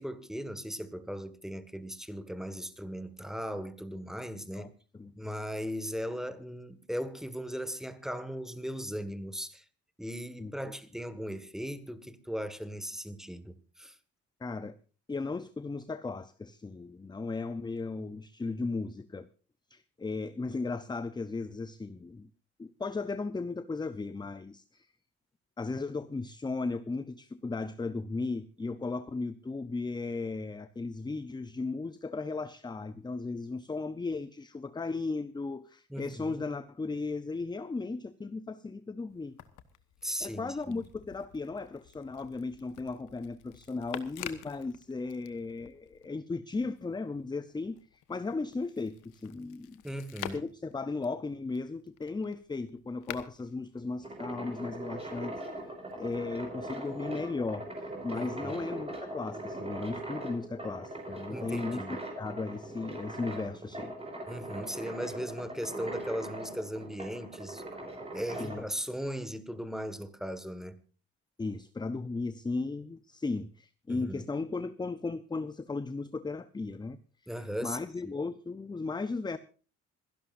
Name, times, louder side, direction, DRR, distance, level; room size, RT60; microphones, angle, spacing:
voice 1, 0.0-4.7 5.2-9.6 10.0-13.9 35.9-36.4 40.0-40.8 49.8-50.4 58.1-58.6 61.3-62.0 64.3-67.6 68.1-70.8 73.9-74.3 77.3-78.1, equal, ahead, 1.6 m, -38 dB
voice 2, 4.5-5.2 10.4-10.5 14.4-14.8 15.1-19.3 19.7-22.3 22.6-24.9 25.6-39.4 40.2-49.8 50.3-55.3 56.0-57.7 58.0-61.8 62.2-63.9 68.4-68.6 71.4-77.0 77.6-79.4, left 3 dB, 15° left, 0.6 m, -36 dB
sound 1, 39.1-46.1 46.5-54.6 55.4-56.2, left 12 dB, 90° left, 1.2 m, -49 dB
sound 2, 53.8-68.6, right 1 dB, 20° right, 4.8 m, -40 dB
26.5 x 11.5 x 2.5 m
cardioid pair, 90°, 30 cm